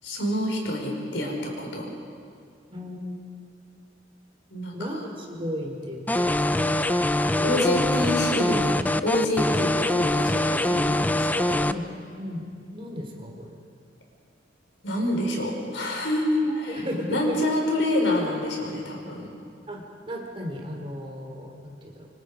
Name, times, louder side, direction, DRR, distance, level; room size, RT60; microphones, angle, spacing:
voice 1, 0.0-1.9 4.5-5.0 7.2-11.7 14.8-19.3, left 1 dB, 80° left, 0 dB, 5.3 m, -27 dB
voice 2, 2.7-3.2 4.7-6.8 7.4-7.6 11.6-11.9 12.2-13.6 16.4-17.3 19.7-22.1, equal, 30° right, 1 dB, 3.7 m, -35 dB
sound 1, 6.1-11.7, left 1 dB, 10° left, 0.5 m, -23 dB
25.5 x 25.0 x 5.2 m, 2.4 s
head